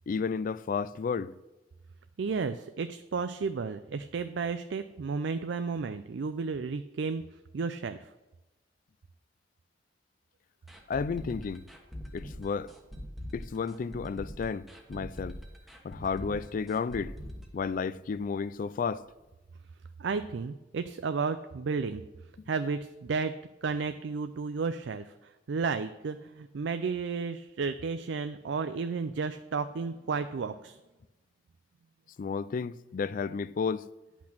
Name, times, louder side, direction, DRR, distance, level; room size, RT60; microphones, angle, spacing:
voice 1, 0.1-1.3 10.9-11.6 12.1-12.7 13.3-15.4 15.8-17.1 17.5-19.0 32.2-33.9, left 5 dB, 45° left, 0.3 m, -32 dB
voice 2, 2.2-7.2 7.5-8.0 20.0-22.0 22.5-25.1 25.5-30.8, right 5 dB, 75° right, 0.4 m, -32 dB
sound 1, 10.7-18.4 18.7-18.8 19.2-19.3, equal, ahead, 1.2 m, -43 dB
10.5 x 6.0 x 6.0 m
head